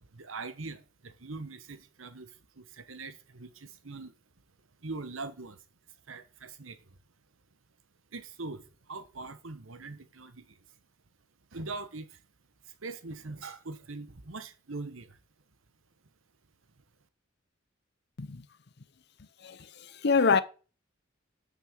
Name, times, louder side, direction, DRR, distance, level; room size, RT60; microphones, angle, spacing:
voice 1, 0.0-4.1 4.8-5.6 6.1-7.0 8.1-10.6 11.5-12.2 12.6-15.2, right 3 dB, 80° right, 1.2 m, -42 dB
voice 2, 19.4-20.4, left 5 dB, 55° left, 0.7 m, -26 dB
6.1 x 6.0 x 7.3 m
head